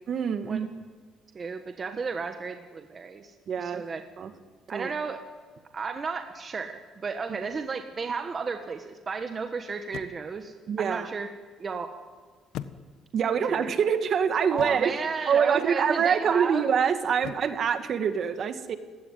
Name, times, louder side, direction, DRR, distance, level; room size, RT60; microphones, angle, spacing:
voice 1, 0.1-0.7 3.5-3.8 4.2-4.3 4.7-4.9 10.7-11.1 13.1-14.9 15.3-18.8, right 7 dB, 45° right, 9 dB, 1.9 m, -25 dB
voice 2, 1.3-3.3 3.6-4.0 4.7-5.2 5.7-11.3 11.6-11.9 13.4-13.8 14.5-16.7, right 5 dB, 30° right, 6 dB, 1.6 m, -33 dB
sound 1, 7.4-7.8 9.9-10.4 12.5-13.3 14.6-15.0 17.2-17.7, left 10 dB, 75° left, 1.2 m, -41 dB
29.5 x 17.5 x 9.4 m, 1.6 s
cardioid pair, 135°, 0 cm